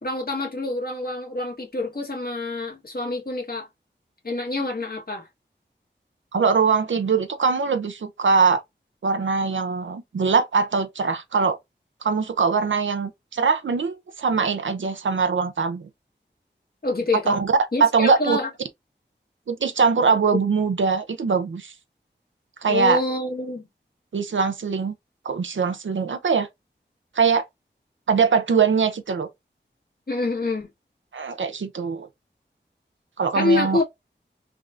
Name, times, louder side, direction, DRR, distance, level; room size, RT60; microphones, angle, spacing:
voice 1, 0.0-3.7 4.2-5.3 16.8-17.4 17.7-18.5 20.3-20.4 22.7-23.7 30.1-30.7 33.3-33.8, left 2 dB, 50° left, 1.3 m, -26 dB
voice 2, 6.3-8.6 9.0-11.6 12.0-15.9 17.3-17.5 17.8-18.4 19.5-21.7 22.6-23.0 24.1-24.9 25.2-26.5 27.2-27.4 28.1-29.3 31.1-32.1 33.2-33.8, right 5 dB, 85° right, 0.5 m, -22 dB
3.4 x 2.4 x 2.4 m
wide cardioid pair, 60°, 19 cm